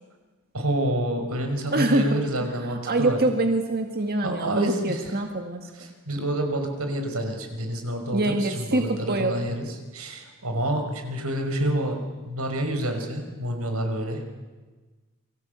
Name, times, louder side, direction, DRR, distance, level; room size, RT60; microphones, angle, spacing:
voice 1, 0.5-3.2 4.2-5.2 5.7-12.0 12.3-14.3, right 1 dB, 85° right, 5 dB, 5.7 m, -28 dB
voice 2, 1.7-2.1 2.7-5.9 8.1-9.5, right 2 dB, 45° right, 4 dB, 1.8 m, -25 dB
29.5 x 24.0 x 8.2 m, 1.3 s
head